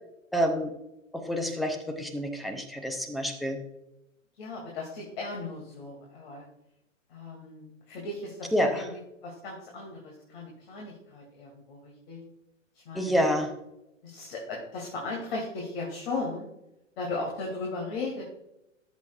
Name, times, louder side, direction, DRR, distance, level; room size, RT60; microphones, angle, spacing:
voice 1, 0.3-0.7 1.1-3.6 8.5-8.9 12.9-13.5, equal, ahead, 4 dB, 0.5 m, -28 dB
voice 2, 4.4-6.5 7.1-8.9 9.2-12.2 12.9-13.2 14.0-16.4 17.0-18.2, left 3 dB, 45° left, -1 dB, 2.5 m, -37 dB
13.0 x 7.1 x 2.4 m, 0.86 s
figure-of-eight pair, 115°, 39 cm